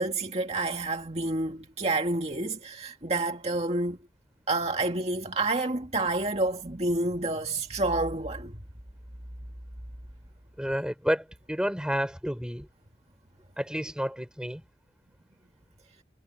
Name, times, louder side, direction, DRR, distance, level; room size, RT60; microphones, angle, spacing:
voice 1, 0.0-4.0 4.5-8.6, right 2 dB, 35° right, 2.0 m, -29 dB
voice 2, 10.6-12.7 13.6-14.6, equal, 5° right, 4.3 m, -30 dB
head